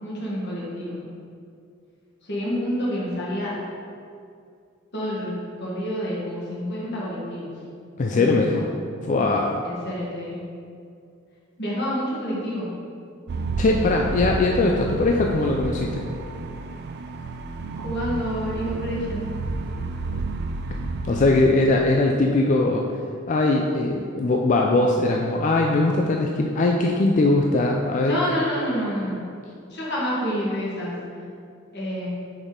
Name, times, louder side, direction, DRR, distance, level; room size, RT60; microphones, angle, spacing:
voice 1, 0.0-1.0 2.2-3.5 4.9-5.3 5.6-7.5 8.1-8.7 9.6-10.4 11.6-12.7 13.6-13.7 14.0-14.2 17.8-19.2 28.0-29.2 29.7-30.9 31.7-32.1, equal, 55° left, -6 dB, 1.5 m, -28 dB
voice 2, 8.0-8.7 9.0-9.6 13.6-16.0 21.0-22.9 23.3-28.2, left 2 dB, 35° left, 1 dB, 0.3 m, -21 dB
sound 1, 13.3-21.4, right 3 dB, 50° right, 0.4 m, -30 dB
6.4 x 5.0 x 3.7 m, 2.3 s
head